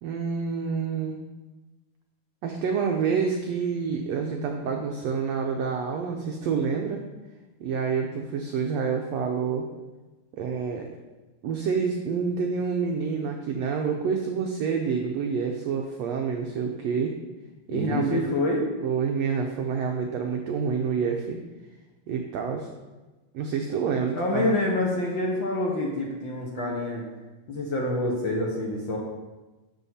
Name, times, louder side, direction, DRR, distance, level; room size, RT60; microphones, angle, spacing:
voice 1, 0.0-1.2 2.4-7.0 7.6-9.7 10.3-10.9 11.4-17.1 17.7-18.2 18.8-21.4 22.1-22.7 23.3-24.5, right 6 dB, 75° right, 3 dB, 1.5 m, -28 dB
voice 2, 17.7-18.7 24.1-27.0 27.5-29.0, left 2 dB, 55° left, -1 dB, 1.3 m, -27 dB
10.5 x 7.2 x 4.2 m, 1.2 s
omnidirectional pair, 3.8 m